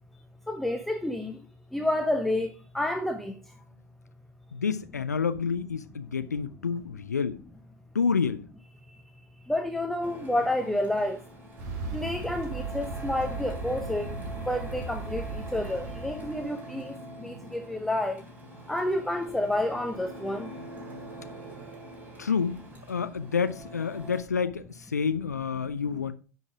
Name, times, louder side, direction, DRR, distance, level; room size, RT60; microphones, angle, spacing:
voice 1, 0.5-1.4 1.7-3.5 9.5-11.2 11.9-18.2 18.7-20.5 21.6-21.7, left 1 dB, ahead, 0.7 m, -30 dB
voice 2, 4.5-7.4 7.9-8.4 22.2-26.1, left 6 dB, 75° left, 0.5 m, -29 dB
Printer, 10.0-24.2, right 1 dB, 20° right, 3.2 m, -44 dB
sound 1, 11.6-16.5, right 3 dB, 40° right, 2.0 m, -37 dB
10.0 x 5.5 x 4.7 m
figure-of-eight pair, 90°, 9 cm